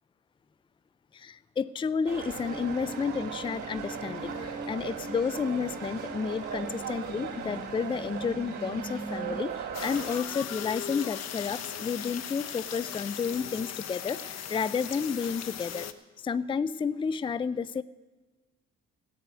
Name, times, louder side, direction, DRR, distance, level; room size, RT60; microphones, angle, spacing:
voice 1, 1.1-15.9 16.2-17.8, left 6 dB, 15° left, 16 dB, 0.4 m, -31 dB
sound 1, 2.0-10.2, right 7 dB, 75° right, 2.7 m, -38 dB
sound 2, 2.3-9.4, right 2 dB, 25° right, 0.9 m, -42 dB
sound 3, 9.7-15.9, left 8 dB, 60° left, 0.9 m, -38 dB
15.5 x 7.7 x 9.4 m, 1.3 s
cardioid pair, 90°, 30 cm